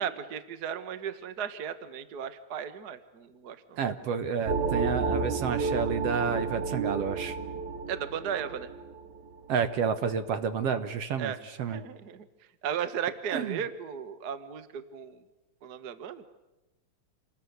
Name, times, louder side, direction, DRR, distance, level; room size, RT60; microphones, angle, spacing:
voice 1, 0.0-3.8 7.9-8.7 11.2-11.4 11.7-12.3 12.6-15.2 15.6-16.2, right 8 dB, 45° right, 11 dB, 1.4 m, -35 dB
voice 2, 3.8-7.4 9.5-11.3 11.6-11.8 13.3-13.6, right 6 dB, 60° right, 11 dB, 2.1 m, -30 dB
sound 1, 4.5-9.8, right 4 dB, 80° right, 3.5 m, -31 dB
28.5 x 21.0 x 9.5 m, 0.99 s
omnidirectional pair, 3.3 m